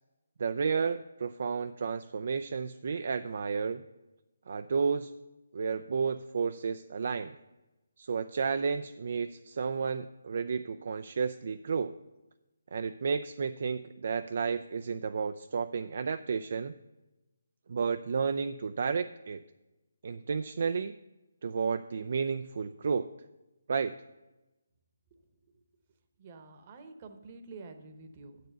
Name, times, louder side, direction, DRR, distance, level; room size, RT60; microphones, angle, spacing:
voice 1, 0.4-3.8 4.5-5.1 5.5-7.4 8.0-12.0 12.7-16.7 17.7-19.4 20.0-20.9 21.4-23.1 23.7-23.9, right 5 dB, 50° right, 10 dB, 0.3 m, -32 dB
voice 2, 26.2-28.4, right 3 dB, 30° right, 8 dB, 0.9 m, -48 dB
8.2 x 6.7 x 6.8 m, 1.0 s
figure-of-eight pair, 145°, 0 cm